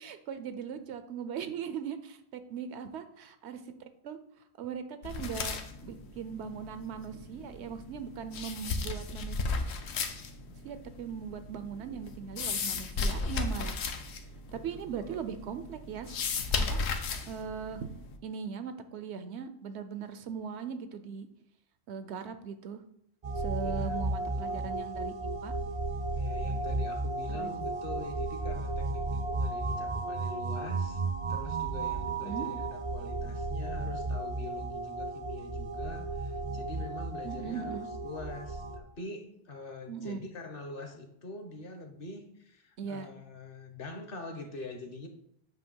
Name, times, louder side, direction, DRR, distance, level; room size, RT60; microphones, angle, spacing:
voice 1, 0.0-3.6 4.0-4.2 4.6-9.4 10.6-14.0 14.5-16.2 16.6-16.8 17.3-17.9 18.2-21.3 21.9-22.8 23.4-25.5 27.4-27.6 32.2-32.5 37.2-37.9 39.9-40.2 42.8-43.1, right 7 dB, 85° right, 10 dB, 0.9 m, -39 dB
sound 1, 5.0-18.2, left 4 dB, 80° left, 1.0 m, -36 dB
voice 2, 14.5-15.2 23.6-24.0 24.3-24.8 26.2-31.0 31.3-45.1, left 3 dB, 60° left, 5 dB, 1.1 m, -44 dB
sound 2, 23.2-38.8, right 3 dB, 45° right, 0.4 m, -34 dB
7.8 x 2.8 x 5.3 m, 0.71 s
omnidirectional pair, 1.1 m